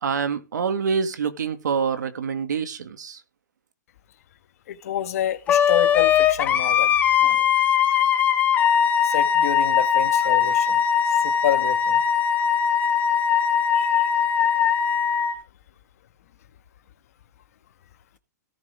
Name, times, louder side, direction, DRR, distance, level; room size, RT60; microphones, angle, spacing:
voice 1, 0.0-3.2, right 6 dB, 85° right, 2.2 m, -26 dB
voice 2, 4.7-6.9 7.2-7.5 9.0-10.8 11.2-12.0 13.7-14.1, left 11 dB, 60° left, 1.6 m, -28 dB
Wind instrument woodwind instrument, 5.5-15.3, left 8 dB, 15° left, 1.4 m, -20 dB
17.0 x 6.7 x 3.5 m
hypercardioid pair, 155°, 9 cm